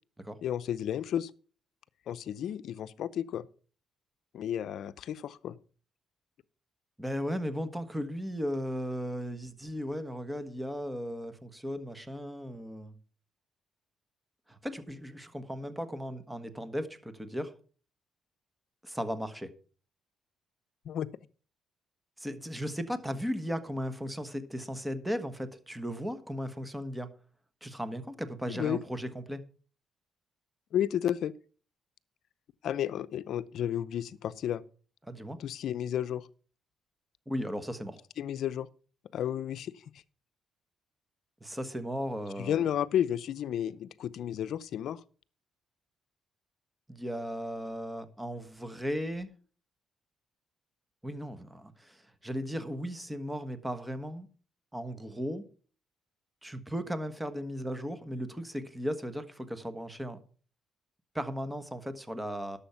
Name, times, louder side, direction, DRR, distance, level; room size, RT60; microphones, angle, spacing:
voice 1, 0.4-1.3 2.1-3.5 4.3-5.6 20.9-21.1 28.5-28.8 30.7-31.3 32.6-34.6 35.4-36.3 38.2-38.7 39.1-39.7 42.4-45.0, left 10 dB, 70° left, 0.6 m, -32 dB
voice 2, 7.0-13.0 14.5-17.5 18.8-19.5 22.2-27.1 27.6-29.4 35.0-35.4 37.3-38.0 41.4-42.7 46.9-49.3 51.0-54.3 54.7-55.4 56.4-60.2 61.1-62.6, equal, 10° right, 1.4 m, -36 dB
11.5 x 7.1 x 5.7 m
cardioid pair, 90°, 0 cm